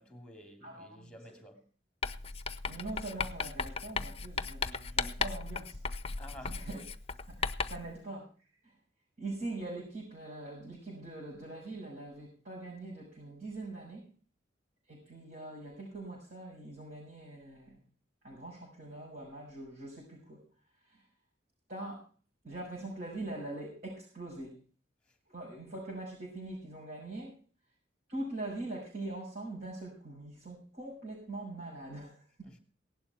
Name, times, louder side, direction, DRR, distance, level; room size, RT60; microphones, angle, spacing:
voice 1, 0.0-1.7 6.2-6.6 32.4-32.6, equal, 5° left, 2.8 m, -51 dB
voice 2, 0.6-1.1 2.6-5.8 6.4-6.8 7.3-7.4 7.7-8.8 9.2-14.1 14.9-17.8 18.2-20.4 20.8-21.0 21.7-22.1 22.4-24.5 25.3-27.3 28.1-32.6, right 2 dB, 50° right, 6.4 m, -43 dB
Writing, 2.0-7.9, left 4 dB, 30° left, 0.6 m, -36 dB
18.0 x 11.5 x 4.4 m
head